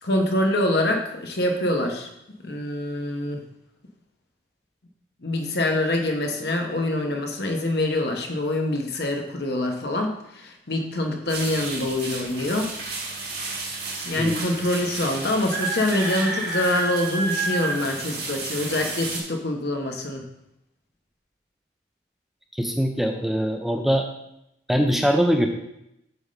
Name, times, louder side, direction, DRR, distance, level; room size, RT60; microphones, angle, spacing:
voice 1, 0.0-2.1 2.4-3.4 5.2-12.7 14.0-20.2, left 1 dB, 60° left, 3 dB, 1.1 m, -25 dB
sound 1, 11.3-19.2, right 3 dB, 55° right, 2.6 m, -31 dB
voice 2, 22.5-24.1 24.7-25.5, equal, ahead, 4 dB, 0.5 m, -22 dB
8.1 x 3.6 x 6.4 m, 0.82 s
head